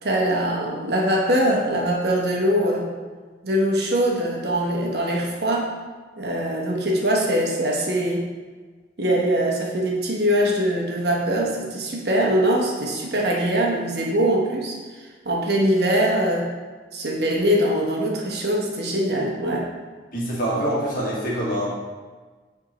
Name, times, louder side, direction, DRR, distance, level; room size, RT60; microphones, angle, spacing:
voice 1, 0.0-2.9 3.4-5.7 6.2-8.3 9.0-14.8 15.2-16.5 16.9-19.7, equal, 60° right, -2 dB, 1.0 m, -22 dB
voice 2, 20.1-21.7, right 1 dB, 50° left, -6 dB, 1.6 m, -25 dB
8.8 x 3.6 x 3.0 m, 1.4 s
head